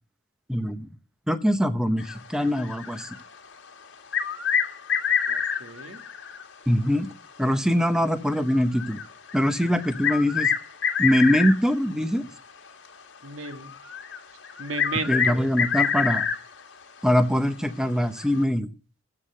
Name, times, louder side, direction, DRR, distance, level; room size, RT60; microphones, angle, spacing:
voice 1, 0.5-0.9 1.3-3.2 6.7-7.1 7.4-9.0 9.3-10.5 11.0-12.2 15.1-16.3 17.0-18.7, equal, 5° right, 0.9 m, -23 dB
sound 1, 2.0-3.5 3.9-6.6 6.9-7.0 7.6-7.7 8.3-11.9 12.7-12.9 13.4-16.6 17.0-17.1 18.2-18.4, left 7 dB, 60° left, 2.0 m, -27 dB
voice 2, 5.3-6.0 13.2-13.7 14.6-15.4, right 3 dB, 80° right, 1.5 m, -34 dB
15.0 x 6.8 x 6.6 m
head